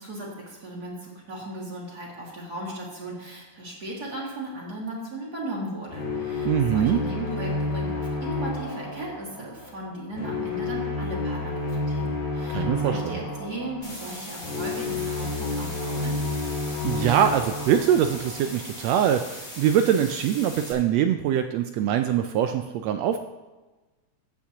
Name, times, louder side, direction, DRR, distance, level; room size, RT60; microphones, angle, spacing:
voice 1, 0.0-16.2, right 1 dB, 35° right, -3 dB, 2.3 m, -36 dB
sound 1, 5.9-19.0, left 3 dB, 75° left, 3.2 m, -30 dB
voice 2, 6.4-7.0 12.5-13.2 16.8-23.2, right 9 dB, 80° right, 7 dB, 1.5 m, -23 dB
sound 2, 13.8-20.7, left 1 dB, 15° left, 2.2 m, -40 dB
14.0 x 8.4 x 2.9 m, 1.2 s
omnidirectional pair, 3.3 m